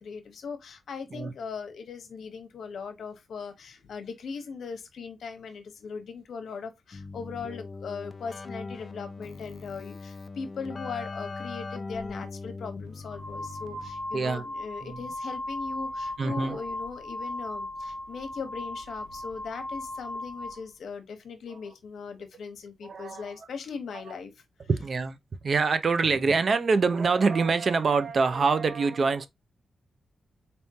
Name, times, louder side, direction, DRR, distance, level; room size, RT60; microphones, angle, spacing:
voice 1, 0.0-24.4, left 5 dB, 75° left, 0.9 m, -39 dB
Keyboard (musical), 6.9-14.2, left 3 dB, 35° left, 0.3 m, -40 dB
sound 1, 12.0-12.1 12.9-20.6, left 1 dB, 20° right, 2.0 m, -37 dB
voice 2, 14.1-14.4 14.8-15.0 16.2-16.6 22.8-23.3 24.7-25.2 25.4-29.3, right 4 dB, 45° right, 0.5 m, -25 dB
4.1 x 3.6 x 2.7 m
wide cardioid pair, 145°, 0 cm